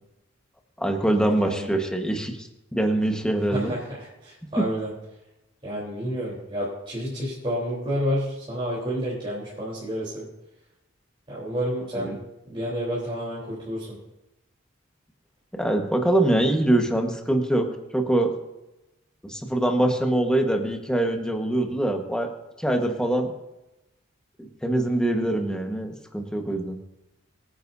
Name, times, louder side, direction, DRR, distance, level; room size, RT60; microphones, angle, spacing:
voice 1, 0.8-3.7 4.6-4.7 11.9-12.1 15.5-17.7 17.9-18.3 19.2-22.3 22.6-23.3 24.4-26.8, right 1 dB, 5° left, 3 dB, 1.4 m, -24 dB
voice 2, 3.5-4.9 5.6-10.3 11.3-12.1 12.5-14.0, equal, 25° right, -8 dB, 3.9 m, -30 dB
24.0 x 9.5 x 2.8 m, 0.96 s
head